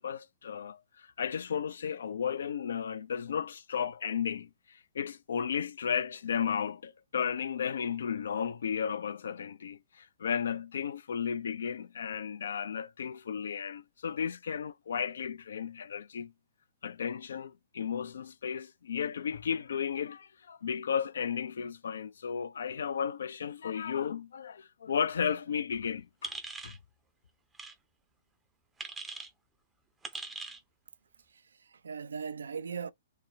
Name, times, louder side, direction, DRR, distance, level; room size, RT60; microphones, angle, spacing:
voice 1, 0.0-16.3 16.8-26.3 26.6-26.8, left 7 dB, 65° left, 0.3 m, -34 dB
sound 1, 26.2-26.8 27.5-27.7 28.8-29.3 30.0-30.6, right 3 dB, 10° right, 0.5 m, -41 dB
voice 2, 31.2-32.9, right 6 dB, 70° right, 0.3 m, -40 dB
3.2 x 2.0 x 3.3 m
figure-of-eight pair, 115°, 0 cm